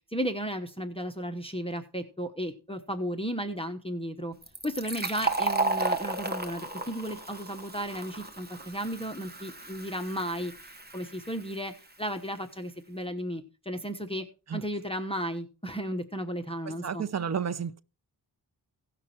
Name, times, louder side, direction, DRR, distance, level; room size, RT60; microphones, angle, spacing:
voice 1, 0.1-4.3 4.6-11.7 12.0-14.2 14.5-17.0, equal, 15° left, 1.1 m, -34 dB
Fill (with liquid), 4.4-11.8, right 3 dB, 25° right, 1.4 m, -34 dB
voice 2, 16.7-17.8, right 7 dB, 40° right, 0.6 m, -32 dB
17.0 x 5.9 x 4.3 m
wide cardioid pair, 80°, 42 cm